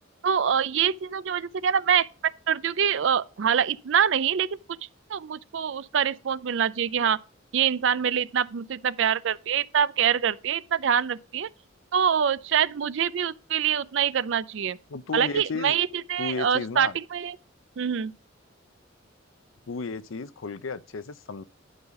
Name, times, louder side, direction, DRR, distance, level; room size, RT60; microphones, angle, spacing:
voice 1, 0.2-4.8 5.1-7.2 7.5-11.5 11.9-14.8 15.1-17.4 17.8-18.1, right 8 dB, 65° right, 0.4 m, -25 dB
voice 2, 14.9-15.8 16.2-17.0 19.7-21.4, left 4 dB, 85° left, 0.6 m, -33 dB
11.0 x 4.0 x 4.6 m
head